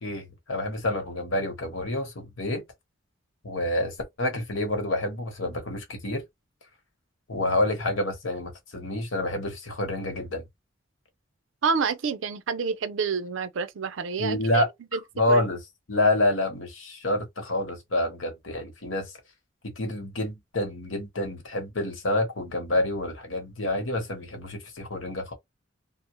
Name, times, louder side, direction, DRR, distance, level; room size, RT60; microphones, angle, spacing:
voice 1, 0.0-2.6 3.4-6.2 7.3-10.4 14.2-14.7 15.2-15.6 15.9-19.1 19.6-25.3, left 1 dB, 80° left, 1.0 m, -28 dB
voice 2, 11.6-14.6 14.9-15.0 15.3-15.4, right 5 dB, 75° right, 0.5 m, -28 dB
2.8 x 2.0 x 2.9 m
head